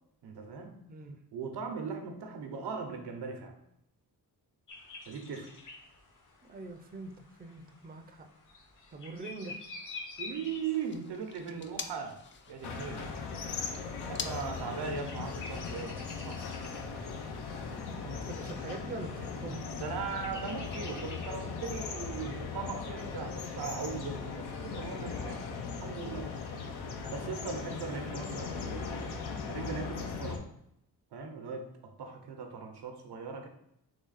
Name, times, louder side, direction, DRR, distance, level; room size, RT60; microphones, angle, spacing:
voice 1, 0.2-0.8 1.3-3.6 5.1-5.5 10.2-12.2 12.5-13.1 14.1-16.4 19.6-26.3 27.1-29.2 29.5-30.5 31.1-33.5, right 5 dB, 85° right, 4 dB, 0.9 m, -39 dB
sound 1, 4.7-24.3, left 3 dB, 50° left, 1.0 m, -51 dB
voice 2, 6.4-8.3 8.9-9.6 17.9-19.7, right 3 dB, 25° right, 6 dB, 0.5 m, -44 dB
sound 2, 10.5-15.6, left 5 dB, 30° left, 0.4 m, -46 dB
sound 3, 12.6-30.4, left 5 dB, 80° left, 0.8 m, -39 dB
3.9 x 3.2 x 4.0 m, 0.77 s
cardioid pair, 115°, 39 cm